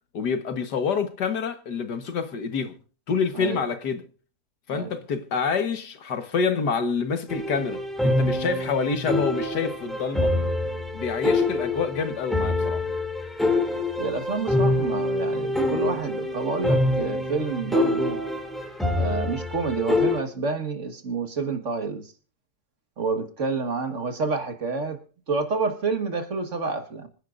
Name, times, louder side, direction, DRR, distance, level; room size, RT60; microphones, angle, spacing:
voice 1, 0.1-2.7 3.1-4.0 4.7-10.3 10.9-12.8, left 5 dB, 80° left, 2.0 m, -27 dB
sound 1, 7.3-20.2, left 1 dB, ahead, 2.6 m, -25 dB
voice 2, 14.0-18.2 19.0-22.1 23.0-25.0 25.3-27.1, right 4 dB, 50° right, 1.9 m, -28 dB
26.0 x 10.0 x 2.6 m
omnidirectional pair, 1.7 m